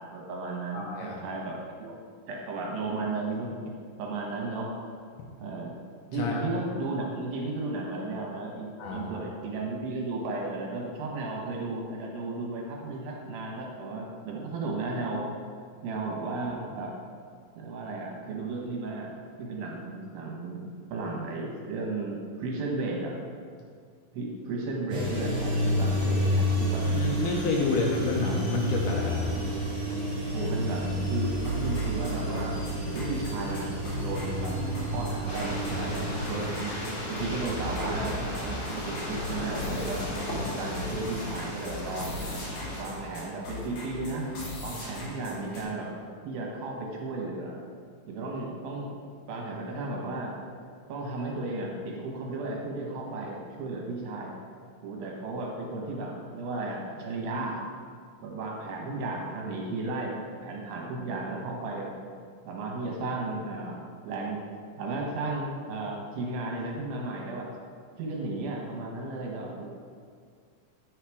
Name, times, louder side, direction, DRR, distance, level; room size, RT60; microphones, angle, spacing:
voice 1, 0.0-2.0 2.3-3.7 4.0-4.9 5.4-5.7 6.1-15.3 15.8-17.0 17.6-23.2 24.1-26.9 27.7-27.8 29.4-29.5 30.3-32.6 32.9-34.6 34.9-36.0 36.2-36.7 37.1-40.1 40.5-42.2 42.8-44.3 44.6-45.9 46.2-47.6 48.1-49.0 49.3-50.4 50.9-54.3 54.8-57.6 58.2-60.2 60.4-62.0 62.5-63.8 64.0-64.4 64.8-67.5 68.0-69.6, right 2 dB, 80° right, -1 dB, 3.0 m, -34 dB
voice 2, 0.7-1.2 6.2-6.4 8.8-9.3 26.8-29.2, left 3 dB, 75° left, -1 dB, 2.0 m, -29 dB
sound 1, 24.9-36.3, equal, 30° right, 1.8 m, -29 dB
sound 2, 31.4-45.6, left 1 dB, 55° left, 2.9 m, -39 dB
sound 3, 35.3-42.8, left 1 dB, 35° left, 0.8 m, -35 dB
8.9 x 4.9 x 4.7 m, 2.1 s
omnidirectional pair, 4.2 m